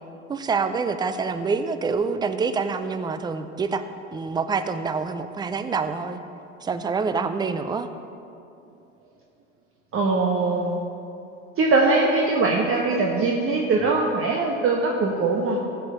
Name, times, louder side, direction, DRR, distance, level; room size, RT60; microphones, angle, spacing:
voice 1, 0.3-3.8 4.1-6.2 6.6-7.9, right 5 dB, 10° right, 10 dB, 0.5 m, -26 dB
voice 2, 9.9-10.8 11.6-15.6, right 3 dB, 30° right, 0 dB, 1.2 m, -21 dB
14.5 x 5.8 x 6.3 m, 2.7 s
hypercardioid pair, 85°, 41 cm